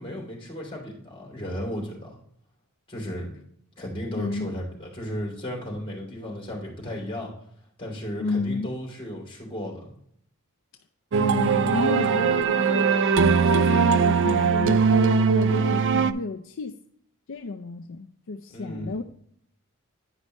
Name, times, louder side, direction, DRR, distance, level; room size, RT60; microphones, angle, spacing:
voice 1, 0.0-2.2 2.9-3.3 3.8-7.3 7.8-9.9 18.5-19.0, equal, 25° left, 2.9 m, -34 dB
voice 2, 4.1-4.5 8.2-8.7 11.2-16.7 17.3-19.0, left 3 dB, 65° left, 0.5 m, -31 dB
sound 1, 11.1-16.1, right 5 dB, 55° right, 0.4 m, -20 dB
10.0 x 5.4 x 3.1 m
head